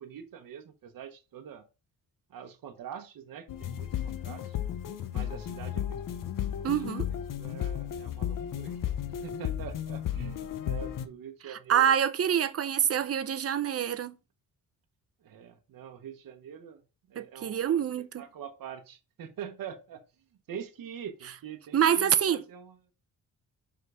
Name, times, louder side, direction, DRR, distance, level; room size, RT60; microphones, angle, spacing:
voice 1, 0.0-1.6 2.3-4.6 5.1-6.3 6.6-6.7 7.3-12.0 15.2-16.8 17.1-17.9 18.2-20.0 20.5-22.8, right 8 dB, 75° right, 1.0 m, -44 dB
sound 1, 3.5-11.1, left 10 dB, 65° left, 0.8 m, -34 dB
voice 2, 6.6-7.1 11.5-14.2 17.2-18.2 21.7-22.4, right 9 dB, 45° right, 0.6 m, -26 dB
6.9 x 3.8 x 4.8 m
cardioid pair, 125°, 34 cm